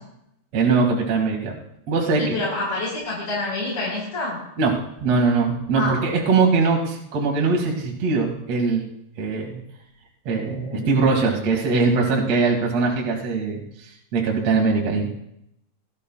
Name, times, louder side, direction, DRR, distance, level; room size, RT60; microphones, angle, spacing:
voice 1, 0.5-1.6 1.9-2.4 4.6-4.7 5.0-8.8 9.2-9.6 10.3-15.1, right 4 dB, 50° right, -1 dB, 2.6 m, -21 dB
voice 2, 2.2-4.4 5.8-6.0 10.7-11.4, left 2 dB, 45° left, -5 dB, 5.4 m, -28 dB
19.0 x 13.0 x 2.3 m, 0.77 s
omnidirectional pair, 4.6 m